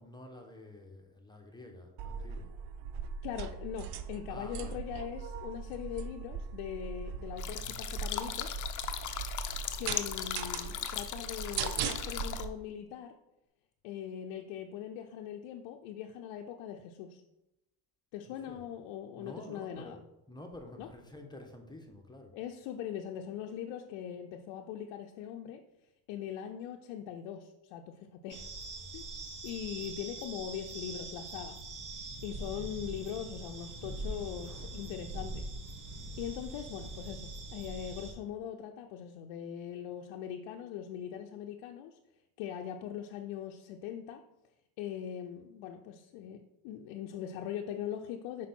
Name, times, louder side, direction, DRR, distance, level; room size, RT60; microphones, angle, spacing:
voice 1, 0.0-2.5 4.3-4.8 18.3-18.6 19.2-20.0 20.3-22.3, left 1 dB, 10° left, 2 dB, 1.3 m, -49 dB
sound 1, 2.0-12.5, right 6 dB, 60° right, 0.6 m, -40 dB
voice 2, 3.2-8.5 9.8-13.1 13.8-17.2 18.1-20.0 20.8-20.9 22.3-25.6 26.1-28.5 28.9-29.0 29.4-31.6 32.2-35.5 36.2-42.0 42.4-44.2 44.8-48.5, left 9 dB, 80° left, 4 dB, 0.6 m, -41 dB
sound 2, 7.4-12.4, left 9 dB, 40° left, 0.7 m, -38 dB
sound 3, 28.3-38.1, right 2 dB, 40° right, 1.2 m, -43 dB
5.8 x 4.6 x 4.3 m, 0.91 s
supercardioid pair, 75°, 46 cm